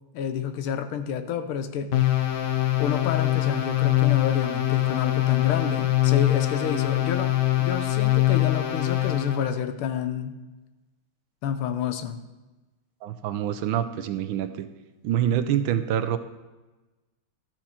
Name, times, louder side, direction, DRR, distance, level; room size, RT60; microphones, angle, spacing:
voice 1, 0.1-1.9 2.8-7.3 7.6-10.4 11.4-12.2, left 8 dB, 90° left, 9 dB, 1.6 m, -29 dB
sound 1, 1.9-9.5, left 15 dB, 60° left, 1.3 m, -23 dB
voice 2, 13.0-14.7 15.0-16.2, right 10 dB, 75° right, 11 dB, 1.3 m, -26 dB
13.5 x 6.1 x 4.3 m, 1.1 s
omnidirectional pair, 2.3 m